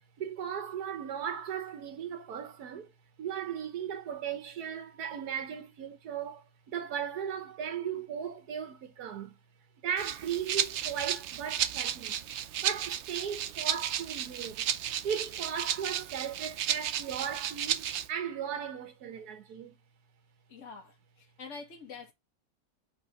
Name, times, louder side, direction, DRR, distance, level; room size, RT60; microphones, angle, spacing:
voice 1, 0.2-2.9 3.2-9.4 9.8-12.2 12.6-14.7 15.0-19.7, right 8 dB, 90° right, 1.5 m, -37 dB
Rattle (instrument), 10.0-18.1, right 10 dB, 65° right, 0.7 m, -33 dB
voice 2, 20.5-22.1, left 4 dB, 50° left, 1.7 m, -46 dB
4.5 x 4.2 x 5.2 m
omnidirectional pair, 1.6 m